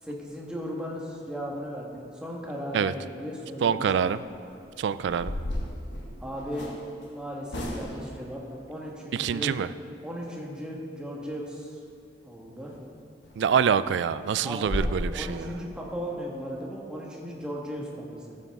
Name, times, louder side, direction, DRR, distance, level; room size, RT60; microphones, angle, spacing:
voice 1, 0.0-3.7 6.2-6.7 7.1-9.6 10.0-11.8 12.2-12.7 14.4-14.7 15.1-18.4, equal, 5° right, -3 dB, 1.4 m, -36 dB
voice 2, 3.6-4.2 4.8-5.3 9.1-9.7 13.4-15.5, right 7 dB, 80° right, 15 dB, 0.3 m, -25 dB
sound 1, 4.5-4.6 5.0-6.8 7.5-8.1 12.7-12.8 13.2-13.3 13.7-13.8 14.2-14.3 14.6-15.0, left 1 dB, 85° left, 1.5 m, -33 dB
13.0 x 8.3 x 3.6 m, 2.7 s
head